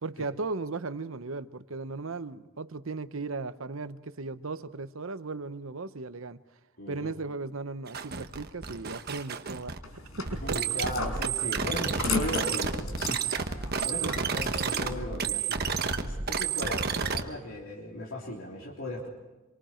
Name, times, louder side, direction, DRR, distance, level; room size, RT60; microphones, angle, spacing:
voice 1, 0.0-6.4 6.9-9.7 10.2-10.6 14.0-14.3, right 3 dB, 75° right, 13 dB, 0.9 m, -36 dB
voice 2, 6.8-7.1 10.3-19.1, left 1 dB, 75° left, -2 dB, 3.4 m, -37 dB
sound 1, 7.9-9.8 10.3-17.2, right 5 dB, 50° right, 1.3 m, -31 dB
sound 2, 9.8-15.0, left 4 dB, 90° left, 4.8 m, -37 dB
27.0 x 24.0 x 4.5 m, 1.2 s
head